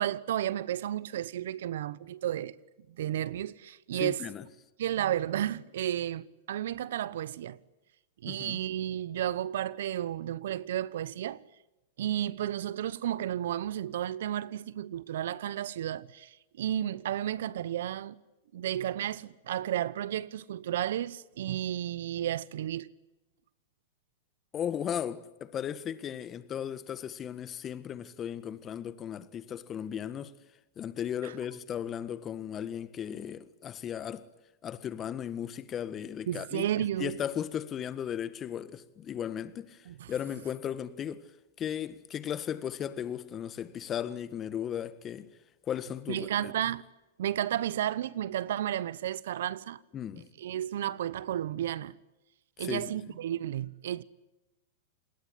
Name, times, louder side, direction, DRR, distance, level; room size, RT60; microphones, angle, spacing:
voice 1, 0.0-2.6 3.0-4.3 4.8-7.6 8.2-11.4 12.0-18.2 18.5-22.9 31.2-31.3 36.3-37.2 39.9-40.1 46.1-46.8 47.2-49.8 50.4-52.0 52.6-54.0, right 11 dB, 70° right, 0.9 m, -32 dB
voice 2, 4.0-4.4 8.3-8.6 24.5-30.3 30.7-34.3 34.6-36.7 37.0-41.2 41.6-45.3 45.7-46.5 49.9-50.3 52.6-52.9, left 9 dB, 30° left, 1.7 m, -36 dB
28.0 x 20.5 x 9.8 m
hypercardioid pair, 110°, 0 cm